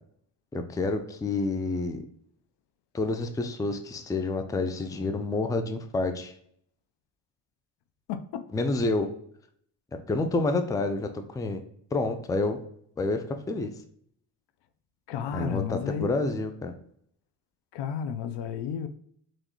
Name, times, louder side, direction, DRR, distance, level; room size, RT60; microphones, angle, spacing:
voice 1, 0.5-2.0 2.9-6.3 8.5-9.1 10.1-11.6 11.9-12.6 13.0-13.7 15.3-16.7, left 3 dB, 10° left, 0.4 m, -28 dB
voice 2, 8.1-8.5 15.1-16.1 17.7-18.9, left 7 dB, 65° left, 0.6 m, -32 dB
3.7 x 3.1 x 3.0 m
supercardioid pair, 70°, 45 cm